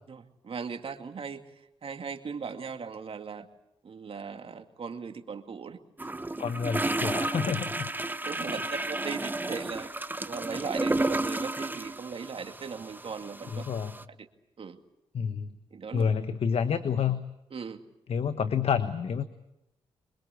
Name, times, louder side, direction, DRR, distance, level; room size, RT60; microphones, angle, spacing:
voice 1, 0.1-1.4 1.8-3.5 3.8-5.8 8.2-9.9 10.3-13.6 14.2-14.3 14.6-14.8 15.7-16.1 17.5-17.8, right 5 dB, 55° right, 6 dB, 2.4 m, -38 dB
sound 1, 6.0-14.0, right 2 dB, 15° right, 1.0 m, -32 dB
voice 2, 6.4-7.9 13.5-14.0 15.1-15.6 15.9-17.2 18.1-19.2, left 7 dB, 65° left, 10 dB, 1.2 m, -29 dB
24.5 x 22.0 x 8.3 m, 0.88 s
supercardioid pair, 55°, 11 cm